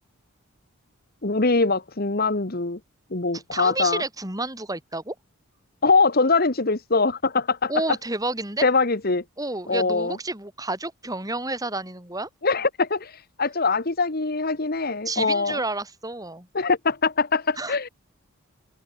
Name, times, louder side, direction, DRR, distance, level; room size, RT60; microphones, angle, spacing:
voice 1, 1.2-2.8 3.1-4.0 5.8-7.7 8.6-9.2 9.7-10.2 12.4-15.6 16.5-17.9, left 4 dB, 45° left, 1.4 m, -23 dB
voice 2, 3.3-5.1 7.7-8.7 9.4-12.3 15.0-16.5 17.6-17.8, right 2 dB, 15° right, 6.3 m, -30 dB
head